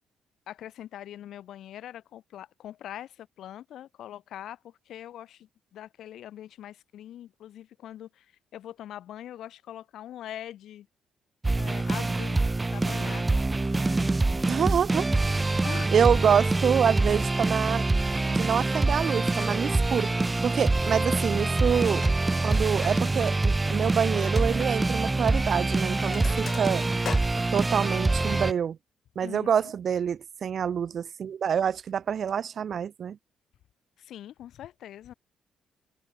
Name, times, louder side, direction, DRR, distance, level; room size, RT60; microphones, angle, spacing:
voice 1, 0.5-8.3 8.5-10.9 11.6-12.4 12.7-13.3 15.6-15.9 29.2-29.7 34.0-35.1, left 11 dB, 75° left, 4.6 m, -42 dB
sound 1, 11.4-28.5, right 2 dB, 20° right, 1.2 m, -25 dB
voice 2, 14.5-15.1 15.9-17.8 18.3-20.1 20.4-22.1 22.4-26.8 27.5-28.8 29.2-33.2, right 8 dB, 55° right, 0.5 m, -26 dB
Sink (filling or washing), 19.0-19.1 19.4-19.9 20.9-21.3 21.6-23.0 23.3-23.4 23.8-23.9 24.4-24.5 25.4-25.6 25.8-28.0, left 7 dB, 50° left, 2.5 m, -42 dB
cardioid pair, 90°, 0 cm